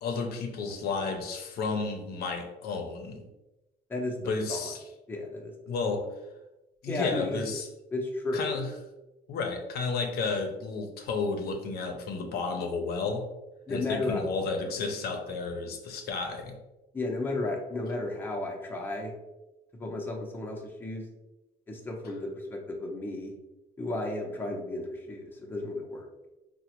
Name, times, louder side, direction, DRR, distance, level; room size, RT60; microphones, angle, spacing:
voice 1, 0.0-3.3 4.3-4.8 5.7-6.0 6.8-7.7 8.3-8.7 9.3-13.3 13.7-16.6, left 4 dB, 65° left, 3 dB, 0.6 m, -32 dB
voice 2, 5.1-5.5 6.9-7.4 7.9-8.6 13.7-14.2 16.9-19.1 19.8-21.1 21.7-23.3 23.8-26.1, left 2 dB, 10° left, 0 dB, 0.6 m, -33 dB
3.8 x 2.1 x 2.9 m, 1.0 s
cardioid pair, 110°, 17 cm